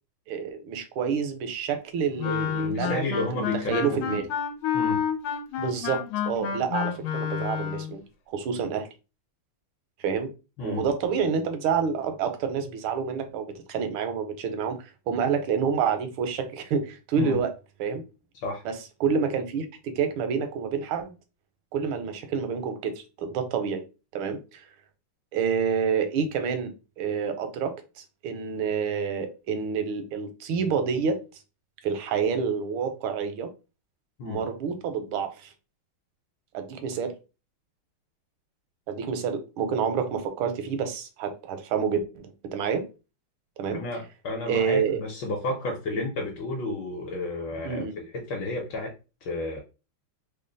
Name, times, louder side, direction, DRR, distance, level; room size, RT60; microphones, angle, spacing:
voice 1, 0.3-4.2 5.6-8.9 10.0-10.3 10.6-17.5 17.8-18.0 18.6-21.1 21.7-23.8 24.1-24.7 25.3-31.2 31.8-33.5 34.2-35.5 36.5-37.1 38.9-42.8 43.6-43.8 44.5-45.0 45.9-46.0 47.6-47.9, right 6 dB, 85° right, 1.5 m, -28 dB
Wind instrument woodwind instrument, 2.2-7.9, left 8 dB, 90° left, 1.5 m, -29 dB
voice 2, 2.2-4.2 4.7-5.0 10.6-10.9 17.2-17.4 18.4-18.6 34.2-34.4 43.7-48.9 49.2-49.6, left 2 dB, 65° left, 1.4 m, -32 dB
3.7 x 2.2 x 3.8 m
omnidirectional pair, 2.3 m